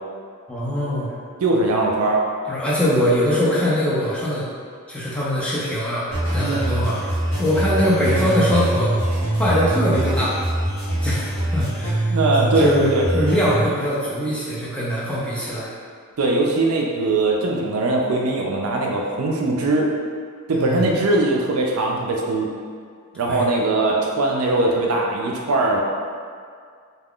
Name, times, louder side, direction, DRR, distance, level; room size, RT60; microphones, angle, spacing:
voice 1, 0.5-1.1 2.5-4.5 4.9-8.9 9.4-10.4 11.0-12.0 12.6-15.7 20.5-20.9 23.2-23.5, equal, 5° left, -9 dB, 0.5 m, -22 dB
voice 2, 1.4-2.2 6.4-6.7 12.1-13.1 16.2-19.9 20.5-22.5 23.1-25.8, right 2 dB, 85° right, -1 dB, 0.4 m, -21 dB
sound 1, 6.1-13.6, right 1 dB, 75° left, 0.9 m, -23 dB
2.3 x 2.3 x 3.5 m, 2.1 s
head